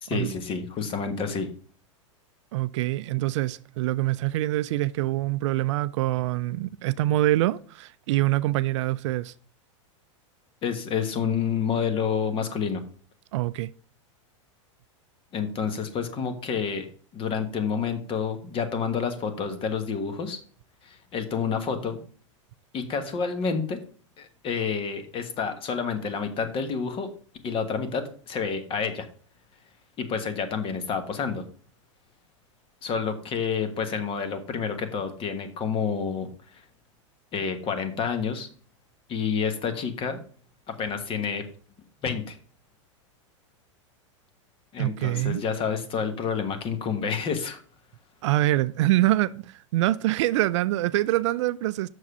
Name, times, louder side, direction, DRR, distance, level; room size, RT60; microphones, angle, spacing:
voice 1, 0.0-1.5 10.6-12.8 15.3-16.9 17.1-20.4 20.8-22.0 22.7-23.8 24.2-27.1 27.4-29.1 30.0-31.4 32.8-36.3 36.5-36.6 37.3-38.5 39.1-40.2 40.7-41.4 42.0-42.4 44.7-47.6, left 6 dB, 35° left, 1.3 m, -29 dB
voice 2, 2.5-9.3 13.3-13.7 44.8-45.4 48.2-51.9, right 16 dB, 65° right, 0.4 m, -25 dB
6.4 x 4.8 x 5.6 m
hypercardioid pair, 115°, 16 cm